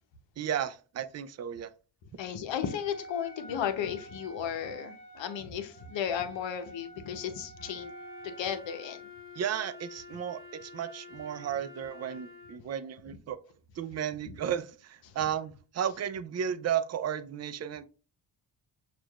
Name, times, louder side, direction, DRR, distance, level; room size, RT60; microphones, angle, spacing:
voice 1, 0.4-1.7 9.4-13.4 13.8-17.8, right 9 dB, 35° right, 0.4 m, -34 dB
voice 2, 2.2-7.9 8.2-9.0, left 8 dB, 70° left, 0.8 m, -34 dB
Wind instrument woodwind instrument, 2.5-9.0, right 3 dB, 15° left, 1.4 m, -49 dB
Wind instrument woodwind instrument 2, 7.5-12.7, left 4 dB, 20° right, 1.8 m, -49 dB
6.1 x 2.5 x 2.3 m
cardioid pair, 70°, 47 cm